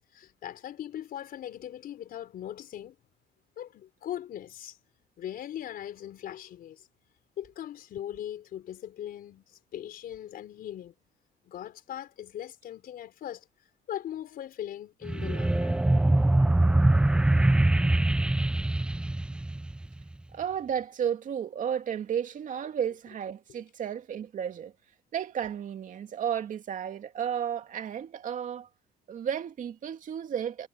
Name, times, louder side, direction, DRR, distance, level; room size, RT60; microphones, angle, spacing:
voice 1, 0.1-3.0 3.6-4.8 5.2-6.9 7.4-10.9 11.4-13.4 13.9-15.8 22.9-23.0, left 11 dB, 60° left, 4.4 m, -40 dB
sound 1, 15.1-20.0, right 2 dB, 5° right, 0.3 m, -23 dB
voice 2, 20.3-24.7 25.1-28.7 29.1-30.7, right 8 dB, 50° right, 2.6 m, -33 dB
cardioid pair, 110°, 17 cm